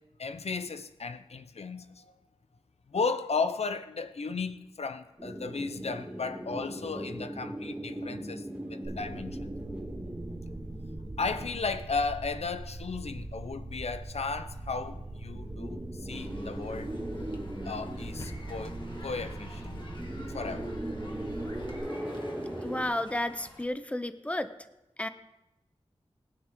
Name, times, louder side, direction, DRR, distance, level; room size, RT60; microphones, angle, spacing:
voice 1, 0.2-2.1 2.9-9.4 11.2-16.9 17.7-19.9 20.3-20.8, left 4 dB, 80° left, 0.7 m, -35 dB
sound 1, 5.2-12.5 12.8-12.9 13.1-13.7 14.3-22.8, right 1 dB, 10° right, 2.5 m, -40 dB
sound 2, 8.8-21.8, right 2 dB, 30° right, 1.4 m, -42 dB
sound 3, 16.1-23.6, left 1 dB, 50° left, 2.1 m, -50 dB
voice 2, 22.6-24.5 25.0-25.1, left 1 dB, 10° left, 0.7 m, -32 dB
21.0 x 9.6 x 3.7 m
wide cardioid pair, 75°, 11 cm